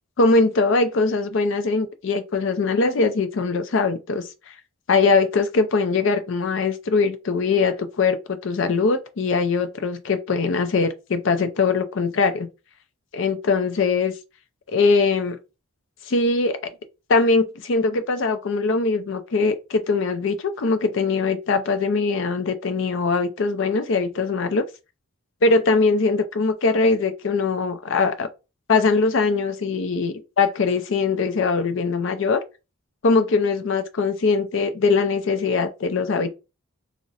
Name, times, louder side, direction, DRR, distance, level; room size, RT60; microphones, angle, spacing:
voice 1, 0.2-4.3 4.9-12.5 13.1-14.1 14.7-15.4 16.1-16.7 17.1-24.6 25.4-28.3 28.7-32.4 33.0-36.3, left 4 dB, 60° left, 0.4 m, -21 dB
2.5 x 2.1 x 3.9 m
head